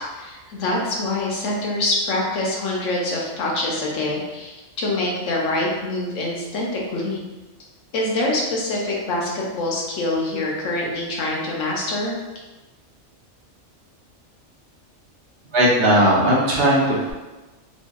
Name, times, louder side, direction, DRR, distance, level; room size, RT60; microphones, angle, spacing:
voice 1, 0.1-7.2 7.9-12.2, left 2 dB, 90° left, -2 dB, 1.1 m, -25 dB
voice 2, 15.5-17.1, right 1 dB, 60° right, -5 dB, 0.8 m, -17 dB
2.7 x 2.6 x 2.2 m, 1.1 s
omnidirectional pair, 1.3 m